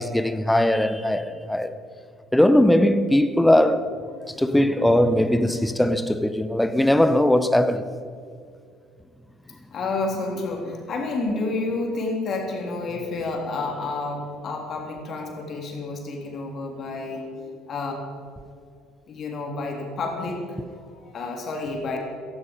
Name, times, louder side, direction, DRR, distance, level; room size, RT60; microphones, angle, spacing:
voice 1, 0.0-1.7 2.3-3.9 4.4-7.9, left 1 dB, 5° left, 0.9 m, -20 dB
voice 2, 9.7-17.3 17.7-17.9 19.1-22.0, left 3 dB, 45° left, 3.5 m, -30 dB
16.0 x 15.0 x 5.4 m
figure-of-eight pair, 60°, 0 cm